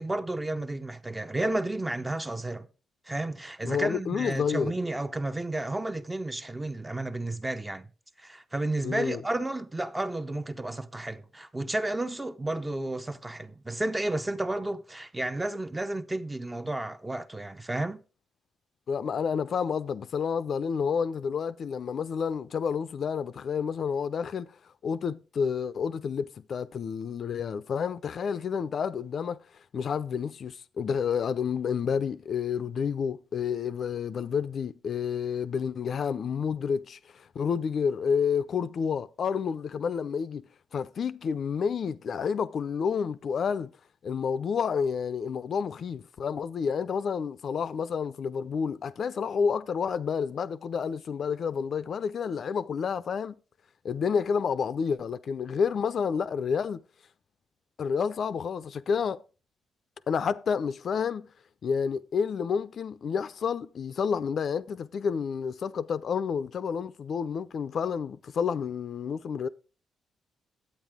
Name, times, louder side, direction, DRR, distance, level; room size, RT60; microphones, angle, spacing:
voice 1, 0.0-2.7 3.1-7.9 8.2-18.0, right 2 dB, 10° right, 0.6 m, -32 dB
voice 2, 3.6-4.7 8.8-9.2 18.9-24.5 24.8-29.4 29.7-40.4 40.7-43.7 44.0-53.4 53.8-56.8 57.8-59.2 60.1-61.3 61.6-69.5, left 6 dB, 45° left, 0.5 m, -29 dB
10.5 x 8.7 x 3.6 m
cardioid pair, 150°, 0 cm